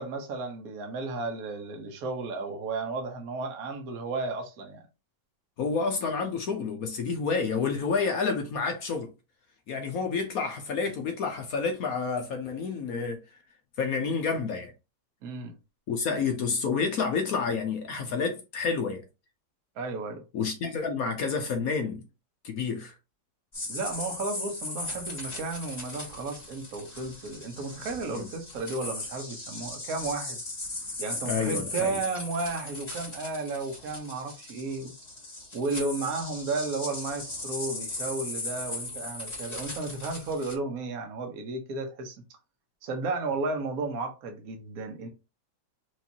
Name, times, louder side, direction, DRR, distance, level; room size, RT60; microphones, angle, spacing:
voice 1, 0.0-4.8 15.2-15.6 19.8-20.2 23.7-30.4 31.0-34.9 35.5-42.2 42.8-45.1, right 3 dB, 55° right, 1.3 m, -33 dB
voice 2, 5.6-9.1 9.7-13.2 13.8-14.7 15.9-19.0 20.3-22.0 22.4-22.9 28.2-28.3 31.2-32.0, left 5 dB, 60° left, 1.0 m, -29 dB
sound 1, 23.5-40.5, left 2 dB, 20° left, 2.1 m, -38 dB
4.7 x 3.1 x 2.8 m
omnidirectional pair, 2.1 m